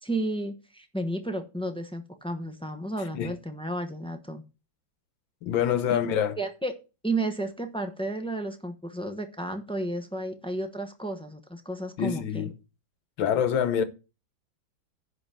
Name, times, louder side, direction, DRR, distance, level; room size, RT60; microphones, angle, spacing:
voice 1, 0.0-4.4 6.4-6.7 7.0-12.5, right 1 dB, 5° left, 0.6 m, -32 dB
voice 2, 5.4-6.3 12.0-12.5 13.2-13.8, left 9 dB, 80° left, 1.8 m, -25 dB
10.5 x 4.0 x 7.3 m
omnidirectional pair, 2.1 m